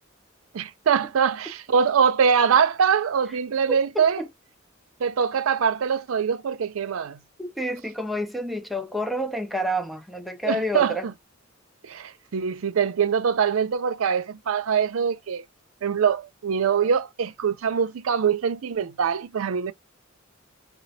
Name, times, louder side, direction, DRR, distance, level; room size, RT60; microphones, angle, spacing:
voice 1, 0.5-4.2 5.0-7.2 10.4-11.1 11.8-15.4 15.8-19.7, right 7 dB, 85° right, 0.5 m, -23 dB
voice 2, 3.7-4.3 7.4-11.1, equal, ahead, 0.4 m, -29 dB
4.1 x 2.0 x 2.6 m
head